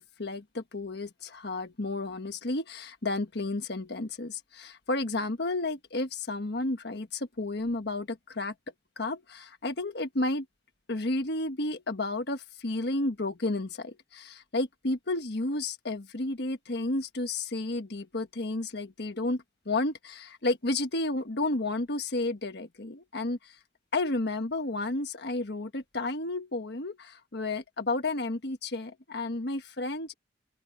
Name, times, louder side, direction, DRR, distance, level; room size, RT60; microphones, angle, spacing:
voice 1, 0.0-8.5 9.0-10.5 10.9-23.6 23.9-30.1, left 2 dB, 65° left, 1.4 m, -32 dB
open air
head